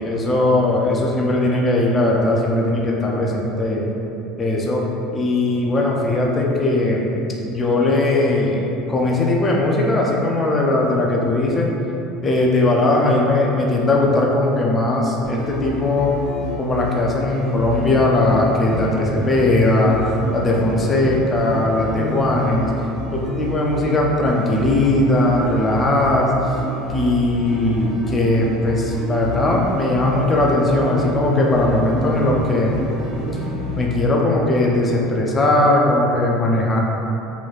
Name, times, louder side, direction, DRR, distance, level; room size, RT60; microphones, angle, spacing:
voice 1, 0.0-3.9 4.4-4.9 5.1-7.1 7.4-8.6 8.9-11.7 12.2-16.1 16.6-20.0 20.3-22.7 23.1-26.3 26.9-32.8 33.8-36.8, left 2 dB, 15° left, -2 dB, 0.4 m, -19 dB
sound 1, 15.2-33.9, left 1 dB, 10° right, 0.9 m, -28 dB
4.4 x 3.0 x 2.4 m, 2.9 s
cardioid pair, 170°, 0 cm